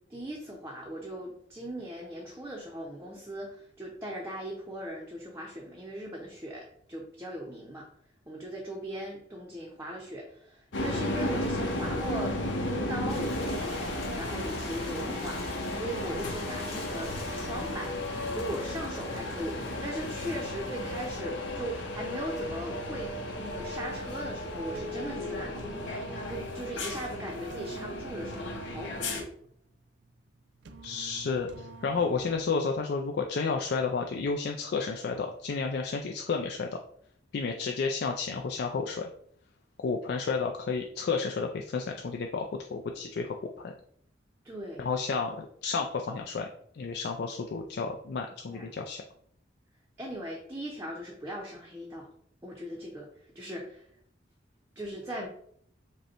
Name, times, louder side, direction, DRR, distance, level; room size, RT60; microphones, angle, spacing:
voice 1, 0.1-7.9 8.3-12.4 12.7-13.8 14.1-15.4 15.7-29.3 44.4-44.9 48.5-48.7 50.0-52.1 52.4-53.1 53.3-53.9 54.8-55.3, right 1 dB, 15° right, -2 dB, 0.6 m, -39 dB
sound 1, 10.7-29.2, left 1 dB, 80° left, 0.8 m, -34 dB
sound 2, 13.1-21.2, left 2 dB, 35° left, 1.3 m, -47 dB
sound 3, 24.7-32.8, right 4 dB, 70° right, 0.4 m, -48 dB
voice 2, 30.8-36.7 37.3-39.1 39.8-42.5 42.7-43.7 44.8-46.5 46.7-49.0, left 4 dB, 60° left, 2 dB, 0.4 m, -31 dB
5.2 x 2.2 x 4.3 m, 0.65 s
head